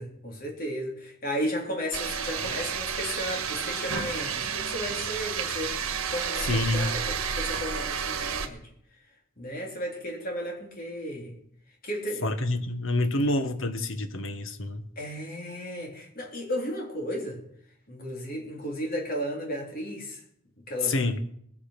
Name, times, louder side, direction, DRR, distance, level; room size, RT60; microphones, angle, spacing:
voice 1, 0.0-5.8 6.1-8.6 9.4-11.4 11.8-12.3 15.0-17.4 17.9-20.2 20.7-20.9, equal, 40° left, 0 dB, 3.9 m, -34 dB
sound 1, 1.9-8.5, right 6 dB, 75° right, 1.6 m, -31 dB
voice 2, 6.4-6.9 12.2-14.9 20.8-21.2, left 2 dB, 60° left, 9 dB, 1.4 m, -27 dB
20.5 x 8.7 x 6.0 m, 0.70 s
head